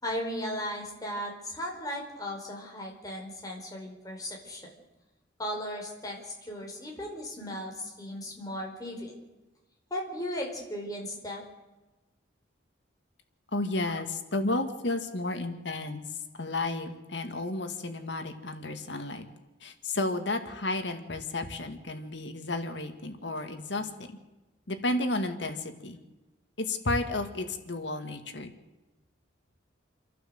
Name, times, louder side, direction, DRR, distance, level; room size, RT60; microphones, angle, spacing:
voice 1, 0.0-4.6 5.4-9.1 9.9-11.4, equal, 20° left, -1 dB, 4.9 m, -36 dB
voice 2, 13.5-16.1 16.4-19.3 19.6-23.9 24.7-26.0 26.6-28.5, left 2 dB, 65° left, 7 dB, 2.1 m, -32 dB
29.0 x 12.0 x 7.9 m, 1.1 s
head